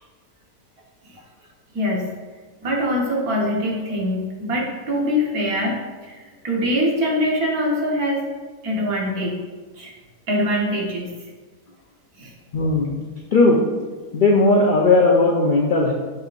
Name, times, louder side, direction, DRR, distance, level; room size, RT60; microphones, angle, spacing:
voice 1, 1.7-2.1 2.6-8.2 8.6-9.4 9.8-9.9 10.3-11.1 12.2-12.3, equal, 65° right, -3 dB, 1.7 m, -23 dB
voice 2, 12.5-13.0 13.3-13.6 14.1-15.9, left 2 dB, 70° left, 0 dB, 0.4 m, -16 dB
7.0 x 6.5 x 2.5 m, 1.4 s
omnidirectional pair, 1.7 m